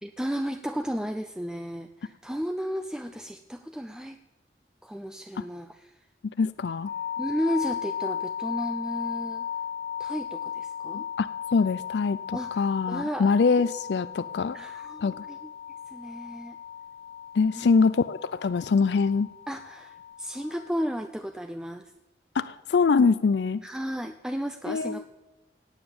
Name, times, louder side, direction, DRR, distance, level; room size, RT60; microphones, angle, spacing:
voice 1, 0.0-4.2 4.8-6.0 7.2-9.5 10.0-11.1 12.3-13.7 14.5-15.5 15.9-16.6 17.5-17.7 19.5-21.9 23.6-25.1, equal, 5° right, 7 dB, 0.4 m, -34 dB
voice 2, 6.4-6.9 10.9-11.3 11.5-14.6 15.0-15.1 17.3-19.3 22.3-23.6 24.7-25.0, left 4 dB, 75° left, 16 dB, 0.4 m, -24 dB
sound 1, 6.8-20.9, left 9 dB, 55° left, 0.9 m, -36 dB
17.0 x 9.1 x 7.0 m, 1.1 s
head